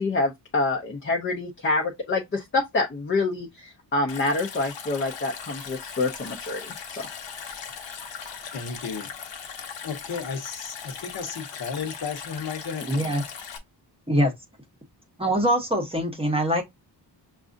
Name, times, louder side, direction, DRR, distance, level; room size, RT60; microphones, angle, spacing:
voice 1, 0.0-7.0, left 3 dB, 25° left, 0.6 m, -27 dB
Stream, 4.1-13.6, left 6 dB, 80° left, 1.0 m, -39 dB
voice 2, 8.5-9.1 9.8-13.2, left 6 dB, 60° left, 0.9 m, -34 dB
voice 3, 12.9-13.2 14.1-14.3 15.2-16.6, equal, 15° right, 0.8 m, -23 dB
6.0 x 2.4 x 2.6 m
wide cardioid pair, 170°, 43 cm